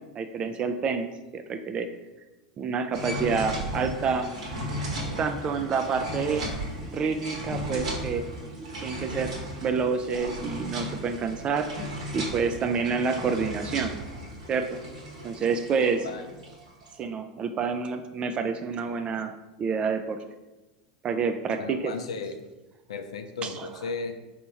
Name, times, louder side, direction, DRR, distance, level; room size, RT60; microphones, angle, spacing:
voice 1, 0.2-1.9 2.6-4.3 5.2-6.5 6.9-8.3 8.8-9.3 9.6-11.7 12.1-14.0 14.5-14.8 15.2-16.1 17.0-19.3 19.6-20.2 21.0-21.9 23.4-23.7, right 5 dB, 35° right, 8 dB, 0.3 m, -28 dB
sound 1, 2.9-16.9, equal, 85° right, 1.3 m, -36 dB
voice 2, 21.6-22.3 22.9-24.1, left 4 dB, 80° left, 7 dB, 0.4 m, -35 dB
3.4 x 2.9 x 4.2 m, 1.1 s
hypercardioid pair, 90°, 3 cm